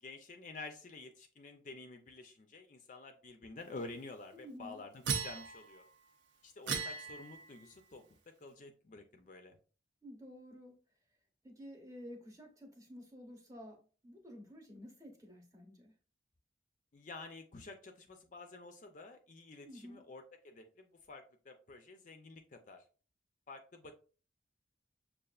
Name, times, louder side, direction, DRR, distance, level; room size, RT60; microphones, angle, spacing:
voice 1, 0.0-5.8 6.4-9.6 16.9-22.9 23.5-23.9, left 3 dB, 40° left, 6 dB, 0.4 m, -50 dB
voice 2, 4.3-4.8 10.0-10.8 11.4-15.9 19.6-20.1, equal, 15° right, 1 dB, 0.8 m, -51 dB
sound 1, 5.0-5.9 6.7-7.6, right 6 dB, 75° right, 0.6 m, -38 dB
6.4 x 2.4 x 2.3 m, 0.38 s
head